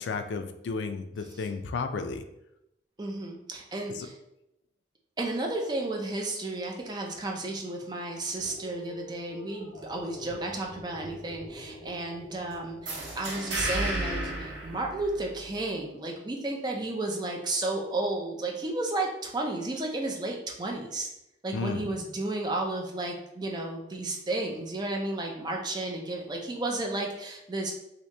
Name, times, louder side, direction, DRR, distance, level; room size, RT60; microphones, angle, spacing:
voice 1, 0.0-2.2 3.9-4.1 21.5-21.9, left 4 dB, 80° left, 7 dB, 0.3 m, -33 dB
voice 2, 3.0-4.2 5.2-21.1 21.4-27.8, right 2 dB, 25° right, 1 dB, 0.4 m, -33 dB
sound 1, 8.3-13.1, equal, 45° left, 1.4 m, -46 dB
beach door close, 12.8-15.6, right 1 dB, 80° right, 0.7 m, -33 dB
2.9 x 2.7 x 3.3 m, 0.84 s
head